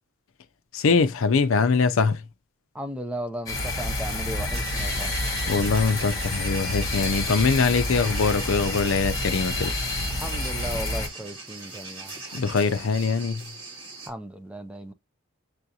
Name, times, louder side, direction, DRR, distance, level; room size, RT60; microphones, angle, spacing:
voice 1, 0.7-2.2 5.5-9.7 12.3-13.4, left 4 dB, 70° left, 0.5 m, -23 dB
voice 2, 2.7-5.1 10.1-12.6 14.1-14.9, equal, 5° right, 0.4 m, -36 dB
sound 1, 3.5-11.1, left 1 dB, 15° left, 1.0 m, -28 dB
sound 2, 4.5-14.1, right 3 dB, 65° right, 2.2 m, -40 dB
6.8 x 2.5 x 2.8 m
head